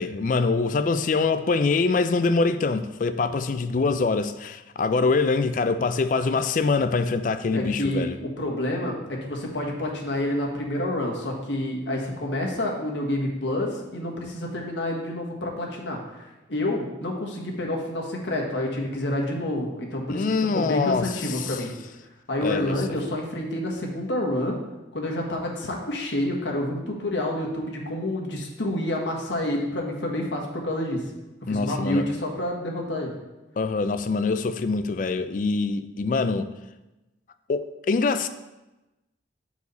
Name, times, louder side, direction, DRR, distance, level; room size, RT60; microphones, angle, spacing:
voice 1, 0.0-8.2 20.1-21.6 22.4-22.8 31.5-32.1 33.6-36.5 37.5-38.3, left 4 dB, 45° left, 0.3 m, -24 dB
voice 2, 7.5-20.2 20.5-21.7 22.3-24.6 24.9-31.0 31.5-33.1, left 1 dB, 75° left, 1.3 m, -28 dB
8.0 x 4.8 x 4.1 m
head